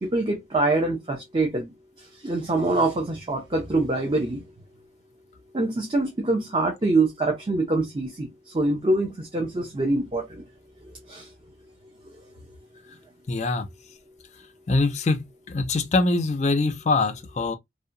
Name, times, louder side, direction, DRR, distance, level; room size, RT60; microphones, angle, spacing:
voice 1, 0.0-1.7 2.2-4.4 5.5-8.3 8.5-10.4 11.1-11.3, right 2 dB, 30° right, 0.5 m, -24 dB
voice 2, 13.3-13.7 14.7-17.6, left 3 dB, 40° left, 0.3 m, -23 dB
2.7 x 2.1 x 2.5 m
head